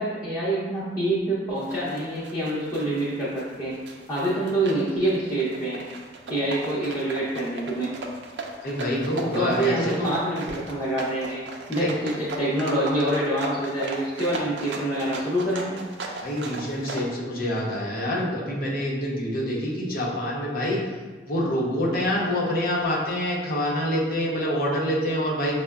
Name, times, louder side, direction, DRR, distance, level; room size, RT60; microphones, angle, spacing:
voice 1, 0.0-3.8 4.1-5.8 6.3-7.9 9.3-15.8, right 1 dB, 20° left, -11 dB, 0.7 m, -26 dB
sound 1, 1.6-17.0, right 3 dB, 80° right, 0.5 m, -37 dB
voice 2, 8.6-10.1 11.8-11.9 16.2-20.8 21.3-25.6, equal, 55° left, -4 dB, 0.7 m, -26 dB
5.3 x 2.1 x 2.3 m, 1.3 s
head